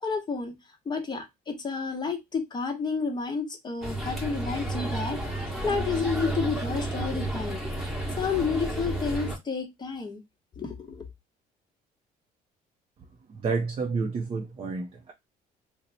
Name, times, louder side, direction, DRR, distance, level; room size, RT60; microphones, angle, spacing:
voice 1, 0.0-0.5 0.9-5.2 5.6-7.6 8.2-10.2 10.6-11.1, left 5 dB, 25° left, 0.9 m, -30 dB
sound 1, 3.8-9.4, right 1 dB, ahead, 1.1 m, -31 dB
voice 2, 13.3-15.1, right 4 dB, 35° right, 0.5 m, -30 dB
2.8 x 2.1 x 4.0 m
cardioid pair, 110°, 17 cm